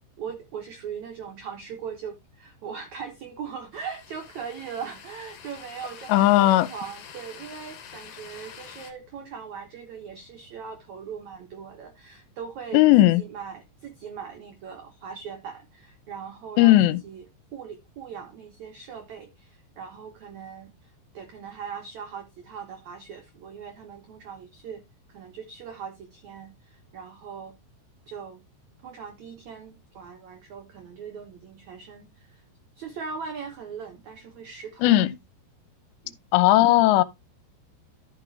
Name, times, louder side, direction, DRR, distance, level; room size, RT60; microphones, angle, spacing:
voice 1, 0.2-17.3 17.5-24.8 25.1-27.5 28.1-28.4 28.8-32.4 32.8-35.0 36.0-36.2, right 6 dB, 70° right, 1.8 m, -40 dB
sound 1, 3.7-8.9, left 7 dB, 60° left, 2.8 m, -46 dB
voice 2, 6.1-6.7 12.7-13.2 16.6-17.0 34.8-35.1 36.3-37.0, left 16 dB, 80° left, 2.9 m, -17 dB
14.0 x 6.0 x 2.7 m
omnidirectional pair, 5.0 m